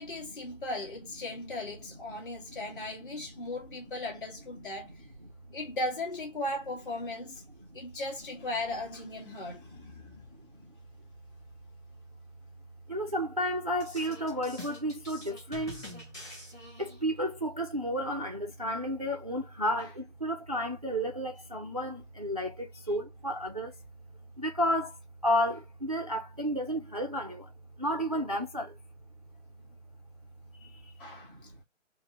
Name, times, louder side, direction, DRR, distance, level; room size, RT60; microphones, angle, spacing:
voice 1, 0.0-5.0 5.5-7.4 7.7-10.0 31.0-31.4, left 2 dB, 40° left, 1.7 m, -37 dB
voice 2, 2.1-2.8 3.3-3.8 5.2-5.3 9.4-10.3 10.5-10.7 12.9-15.8 16.8-23.7 24.4-25.0 25.2-27.5 27.8-28.8 30.6-30.9 31.2-31.6, equal, 35° right, 0.4 m, -32 dB
sound 1, 13.8-17.2, left 2 dB, 15° left, 1.0 m, -46 dB
4.2 x 2.1 x 2.8 m
figure-of-eight pair, 150°, 38 cm